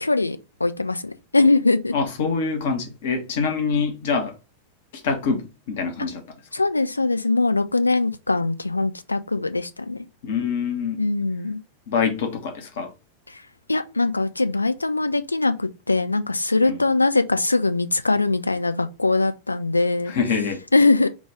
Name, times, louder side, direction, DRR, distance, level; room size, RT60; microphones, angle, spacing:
voice 1, 0.0-1.9 6.5-10.1 11.0-11.6 13.7-20.1 20.7-21.1, left 3 dB, 80° left, 0.4 m, -21 dB
voice 2, 1.9-4.3 5.0-6.2 10.2-11.1 11.9-12.9 16.7-16.8 20.1-20.6, left 5 dB, 55° left, 1.0 m, -25 dB
3.9 x 2.4 x 4.5 m
figure-of-eight pair, 90°, 0 cm